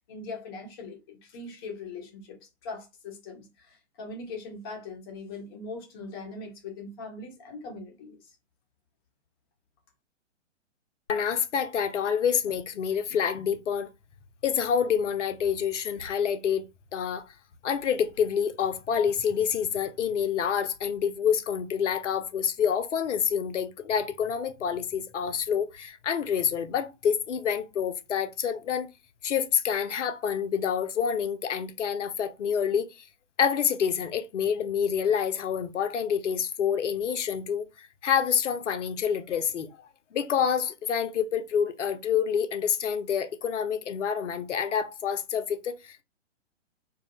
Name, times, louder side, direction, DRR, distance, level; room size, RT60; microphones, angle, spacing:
voice 1, 0.1-8.3, left 3 dB, 20° left, 0.6 m, -41 dB
voice 2, 11.1-13.9 14.4-16.6 16.9-17.3 17.6-28.9 29.2-32.9 33.4-39.8 40.1-46.0, left 7 dB, 70° left, 0.5 m, -27 dB
2.2 x 2.0 x 2.8 m
figure-of-eight pair, 120°, 37 cm